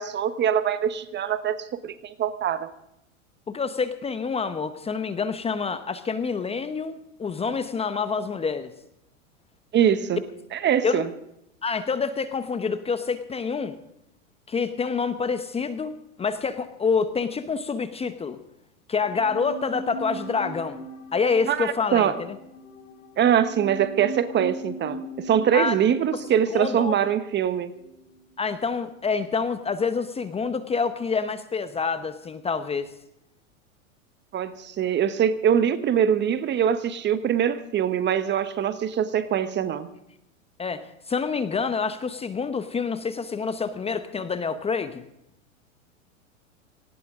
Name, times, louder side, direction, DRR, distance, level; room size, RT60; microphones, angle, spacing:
voice 1, 0.0-2.7 9.7-10.2 10.5-11.1 21.5-22.2 23.2-25.0 25.3-27.7 34.3-39.9, right 9 dB, 25° right, 12 dB, 1.1 m, -23 dB
voice 2, 3.5-8.7 10.8-11.0 11.6-13.8 14.5-18.4 18.9-20.8 21.1-22.4 25.5-25.7 26.5-27.0 28.4-32.9 40.6-45.0, left 5 dB, 15° left, 11 dB, 0.9 m, -27 dB
sound 1, 19.0-28.3 28.6-28.7, equal, 80° left, 4.6 m, -40 dB
19.0 x 17.5 x 3.7 m, 0.81 s
hypercardioid pair, 110°, 40 cm